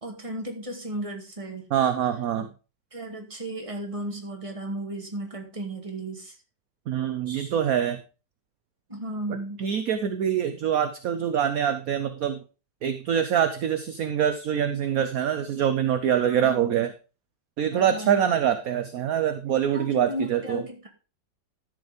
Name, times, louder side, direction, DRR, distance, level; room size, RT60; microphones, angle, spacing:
voice 1, 0.0-1.7 2.9-6.4 7.3-7.6 8.9-9.6 16.3-16.8 17.7-18.3 19.7-20.9, right 1 dB, 15° right, 2 dB, 2.2 m, -35 dB
voice 2, 1.7-2.5 6.9-8.0 9.6-12.4 12.8-16.9 17.6-20.6, right 9 dB, 60° right, 9 dB, 1.1 m, -25 dB
13.0 x 5.4 x 5.1 m, 0.33 s
omnidirectional pair, 2.0 m